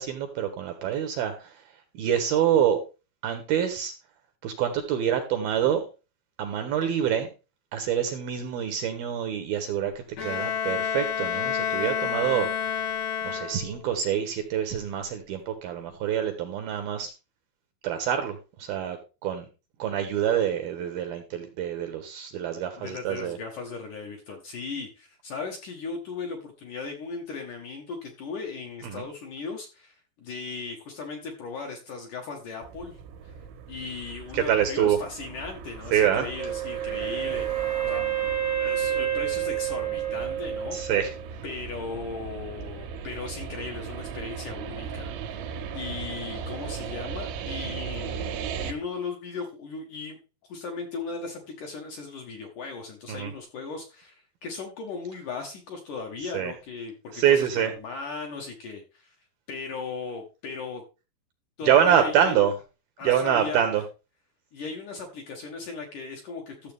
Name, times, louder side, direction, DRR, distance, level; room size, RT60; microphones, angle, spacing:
voice 1, 0.0-1.5 1.9-2.8 3.2-3.9 4.4-5.9 6.4-7.3 7.7-9.9 10.2-12.9 13.2-17.1 17.8-18.3 18.6-19.0 19.2-19.5 19.8-23.4 28.8-29.0 34.3-35.0 35.9-36.3 40.7-41.1 53.1-53.3 56.3-56.5 57.1-57.7 61.6-62.5 63.0-63.8, right 9 dB, 75° right, 7 dB, 2.4 m, -26 dB
Bowed string instrument, 10.2-13.9, left 8 dB, 85° left, 1.4 m, -29 dB
voice 2, 22.8-33.3 33.7-38.2 38.6-40.8 41.4-59.1 59.5-60.8 61.6-62.5 63.0-63.8 64.5-66.7, left 4 dB, 60° left, 2 dB, 2.2 m, -37 dB
sound 1, 32.6-48.7, right 7 dB, 90° right, 3.5 m, -38 dB
Wind instrument woodwind instrument, 36.4-41.2, right 10 dB, 25° left, 0.5 m, -29 dB
13.5 x 7.3 x 3.5 m, 0.31 s
omnidirectional pair, 5.2 m